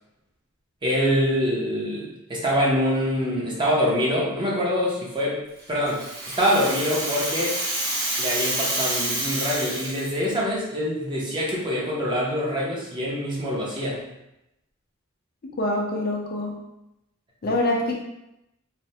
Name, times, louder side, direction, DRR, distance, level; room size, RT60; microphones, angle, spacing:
voice 1, 0.8-5.4 5.7-6.0 6.4-7.5 8.2-14.0, equal, 25° right, -5 dB, 0.6 m, -24 dB
Rattle (instrument), 5.6-10.3, right 1 dB, 45° right, 1.2 m, -28 dB
voice 2, 15.4-16.6 17.4-17.9, left 1 dB, 45° left, -1 dB, 0.5 m, -25 dB
3.2 x 2.1 x 2.7 m, 0.87 s
head